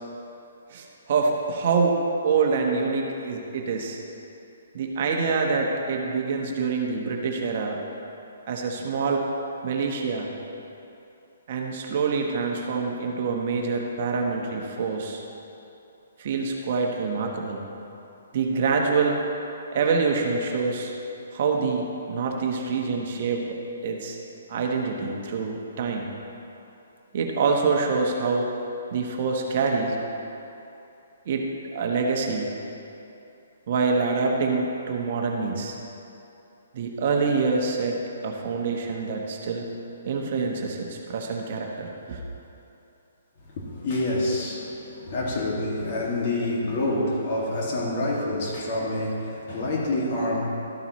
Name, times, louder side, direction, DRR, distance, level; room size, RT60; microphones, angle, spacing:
voice 1, 0.7-2.0 2.2-4.0 4.7-7.8 8.5-9.3 9.6-10.3 11.5-15.2 16.2-17.7 18.3-19.2 19.7-20.9 21.3-23.5 23.8-24.2 24.5-26.1 27.1-28.5 28.9-30.0 31.3-31.5 31.7-32.6 33.7-35.8 36.7-39.7 40.1-42.2, right 4 dB, 45° right, 1 dB, 1.1 m, -26 dB
voice 2, 43.6-50.5, left 1 dB, 40° left, -3 dB, 2.1 m, -27 dB
13.0 x 9.1 x 3.1 m, 2.9 s
hypercardioid pair, 155°, 0 cm